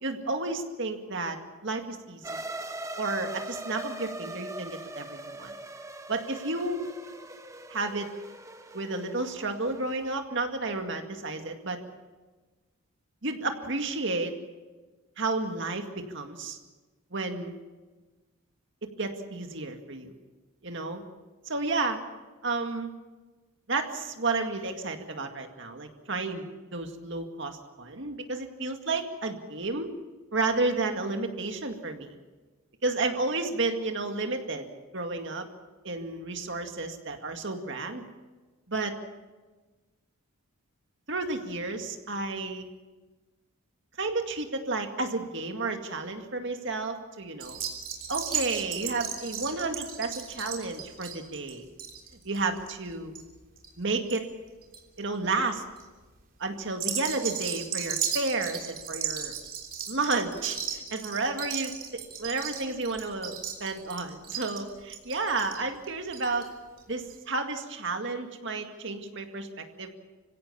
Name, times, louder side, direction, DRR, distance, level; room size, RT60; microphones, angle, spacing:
voice 1, 0.0-1.4 1.6-2.4 3.0-5.5 6.1-6.9 7.7-8.1 8.7-11.8 13.2-14.3 15.2-16.6 17.1-17.6 19.0-20.1 20.6-21.0 21.5-22.0 22.4-22.9 23.7-29.9 30.3-32.2 32.8-34.7 34.9-35.5 35.8-38.1 38.7-39.0 41.1-42.7 44.0-47.6 48.1-51.7 52.2-53.2 53.8-54.2 55.0-55.6 56.4-59.3 59.9-66.5 66.9-70.0, right 3 dB, 55° right, 5 dB, 2.1 m, -31 dB
sound 1, 2.2-10.2, right 2 dB, 15° right, 0.9 m, -41 dB
sound 2, 47.4-54.2 54.5-55.0 55.5-55.8 56.7-66.5 66.8-66.9 67.1-67.2, right 8 dB, 40° right, 3.3 m, -35 dB
26.0 x 16.5 x 7.2 m, 1.3 s
head